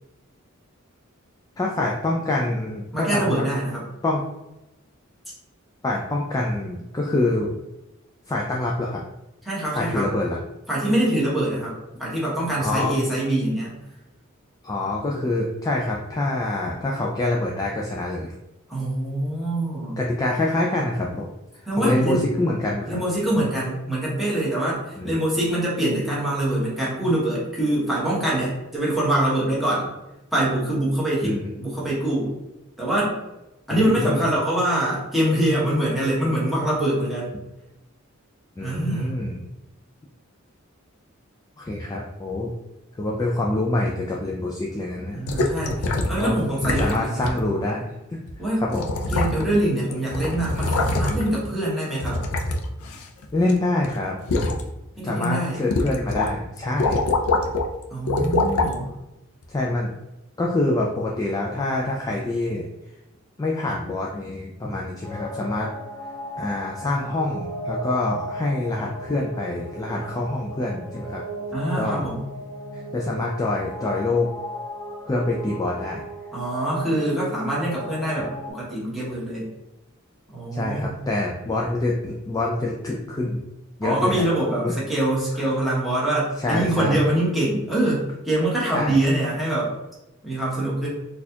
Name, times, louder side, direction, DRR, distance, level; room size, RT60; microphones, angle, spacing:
voice 1, 1.6-3.5 4.0-4.2 5.8-7.6 8.3-9.0 9.7-10.4 12.6-13.0 14.6-18.3 20.0-21.3 21.5-23.0 23.4-23.5 25.0-25.2 31.2-31.5 33.7-34.2 38.6-39.4 41.6-42.5 42.9-45.2 46.2-48.2 48.6-48.8 53.3-54.2 55.0-57.0 59.5-59.9 60.4-62.7 63.4-65.7 66.4-71.2 71.7-72.1 72.7-74.3 75.1-76.0 80.5-83.4 83.8-84.2 84.6-84.7 85.4-85.5 86.4-87.0 88.7-89.0, left 2 dB, 15° left, -2 dB, 0.3 m, -26 dB
voice 2, 2.9-3.8 9.4-10.1 10.7-13.7 18.7-20.0 21.7-22.3 22.8-29.9 30.3-32.3 32.8-33.2 33.7-37.3 38.6-39.2 45.1-47.3 48.4-48.7 49.1-52.2 55.0-55.6 57.9-58.9 71.5-72.2 76.3-79.5 80.3-81.0 83.8-89.7 90.2-90.9, right 1 dB, ahead, -8 dB, 1.1 m, -24 dB
sound 1, 45.3-46.2 46.6-47.0 47.2-47.4 48.3-48.4 48.7-49.6 49.9-51.4 52.0-53.5 53.8-54.6 55.1-55.2 55.7-56.3 56.6-57.7 58.1-58.7 59.4-59.5, left 2 dB, 85° left, 0.5 m, -24 dB
sound 2, 65.0-78.5, right 1 dB, 85° right, 0.9 m, -36 dB
4.1 x 2.4 x 2.8 m, 0.96 s
head